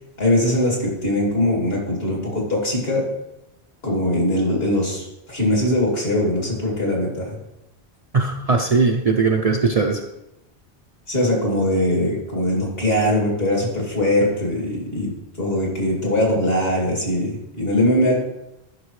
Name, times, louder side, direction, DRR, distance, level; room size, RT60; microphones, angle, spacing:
voice 1, 0.2-3.0 3.8-7.4 11.1-15.1 15.4-18.2, left 1 dB, 60° left, -2 dB, 2.8 m, -21 dB
voice 2, 8.1-10.0, right 4 dB, 40° right, 2 dB, 0.6 m, -19 dB
12.0 x 5.9 x 3.2 m, 0.90 s
omnidirectional pair, 1.1 m